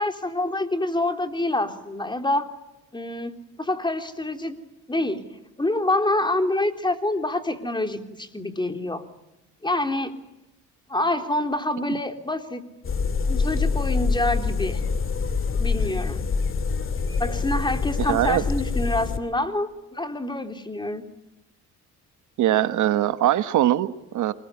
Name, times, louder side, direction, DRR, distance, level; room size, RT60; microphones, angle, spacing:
voice 1, 0.0-2.5 2.9-4.6 4.9-5.2 5.6-9.0 9.6-10.1 10.9-12.6 13.3-14.8 15.6-16.2 17.2-21.0, left 2 dB, 15° left, 6 dB, 3.5 m, -26 dB
sound 1, 12.8-19.2, left 4 dB, 45° left, 2.4 m, -25 dB
voice 2, 18.0-18.4 22.4-24.3, right 12 dB, 75° right, 12 dB, 1.4 m, -22 dB
27.5 x 21.0 x 9.7 m, 0.92 s
cardioid pair, 90°, 30 cm